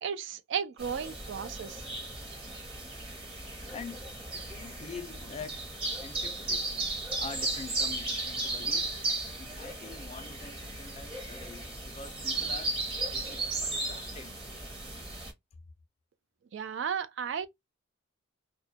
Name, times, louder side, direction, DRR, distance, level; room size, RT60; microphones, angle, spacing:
voice 1, 0.0-1.8 16.5-17.5, right 7 dB, 65° right, 0.3 m, -34 dB
sound 1, 0.8-15.3, right 2 dB, 25° right, 0.8 m, -35 dB
voice 2, 3.7-4.1 4.3-6.7 7.2-9.0 9.3-12.8 13.1-14.3, left 4 dB, 30° left, 0.4 m, -45 dB
2.2 x 2.1 x 2.6 m
head